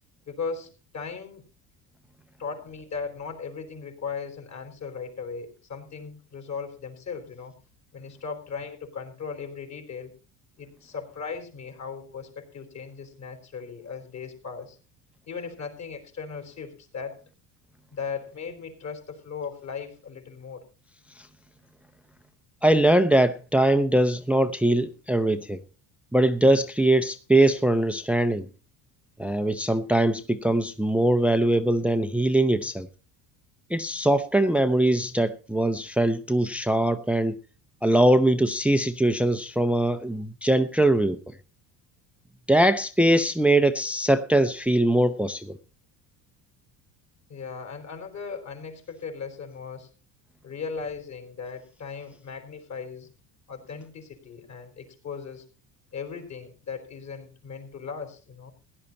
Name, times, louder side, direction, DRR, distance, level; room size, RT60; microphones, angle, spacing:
voice 1, 0.3-1.5 2.4-7.5 7.9-10.1 10.6-14.8 15.3-17.2 17.9-20.6 47.3-49.9 50.4-53.1 53.5-55.4 55.9-58.5, left 5 dB, 45° left, 4.5 m, -37 dB
voice 2, 22.6-25.6 26.1-28.5 29.2-32.9 33.7-37.4 37.8-41.2 42.5-45.6, right 1 dB, 5° right, 0.7 m, -22 dB
16.0 x 11.0 x 4.2 m
supercardioid pair, 110°, 40 cm